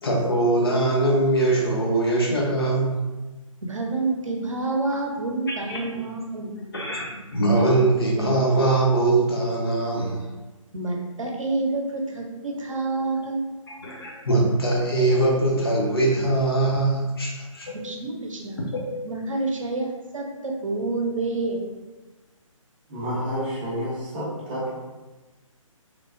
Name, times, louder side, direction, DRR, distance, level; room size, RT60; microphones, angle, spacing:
voice 1, 0.0-3.0 4.9-5.0 5.5-5.8 6.7-10.3 13.7-17.8 18.7-18.9, right 2 dB, 45° left, -2 dB, 0.6 m, -22 dB
voice 2, 3.6-6.6 10.7-13.4 17.7-18.6 19.0-21.6, right 3 dB, 70° right, 0 dB, 0.6 m, -28 dB
voice 3, 22.9-24.7, equal, 15° right, -7 dB, 0.5 m, -29 dB
3.1 x 2.0 x 2.5 m, 1.2 s
figure-of-eight pair, 145°, 18 cm